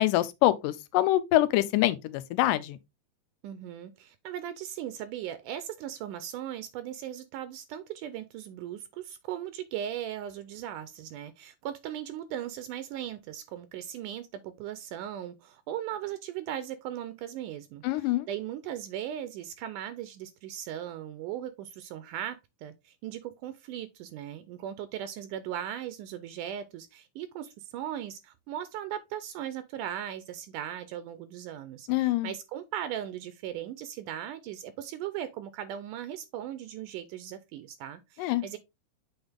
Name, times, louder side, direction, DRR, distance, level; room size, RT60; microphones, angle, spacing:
voice 1, 0.0-2.8 17.8-18.3 31.9-32.3 38.2-38.4, left 15 dB, 80° left, 2.2 m, -25 dB
voice 2, 3.4-38.6, right 11 dB, 80° right, 2.1 m, -38 dB
7.9 x 4.0 x 3.4 m
omnidirectional pair, 3.9 m